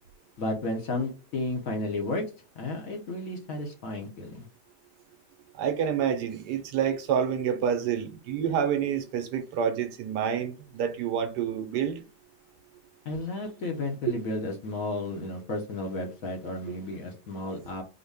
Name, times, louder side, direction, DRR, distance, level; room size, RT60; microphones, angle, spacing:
voice 1, 0.4-2.2 2.6-4.5 13.0-17.8, left 2 dB, 60° left, 1.1 m, -33 dB
voice 2, 5.6-12.0, right 8 dB, 75° right, 1.2 m, -28 dB
3.9 x 2.1 x 3.4 m
omnidirectional pair, 1.8 m